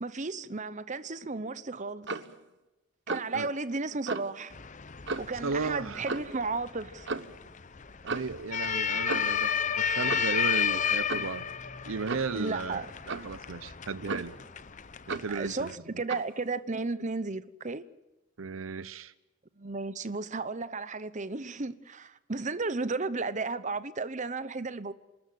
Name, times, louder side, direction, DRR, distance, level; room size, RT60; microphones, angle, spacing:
voice 1, 0.0-2.1 3.1-4.6 5.2-7.1 12.3-12.9 15.3-17.8 19.6-24.9, right 3 dB, 35° right, 0.9 m, -34 dB
Clock, 2.0-2.3 3.1-3.4 4.1-4.3 5.1-5.4 6.1-6.4 7.1-7.3 8.1-8.4 9.1-9.4 10.1-10.4 11.1-11.3 12.1-12.4 13.1-13.3 14.1-14.5 15.1-15.4 16.1-16.3, right 3 dB, 60° right, 1.2 m, -35 dB
sound 1, 4.5-15.8, left 7 dB, 35° left, 0.8 m, -32 dB
voice 2, 5.4-6.0 8.0-11.4 11.9-14.3 15.1-15.7 18.4-19.1, right 4 dB, 80° right, 0.7 m, -35 dB
27.0 x 13.0 x 9.4 m
head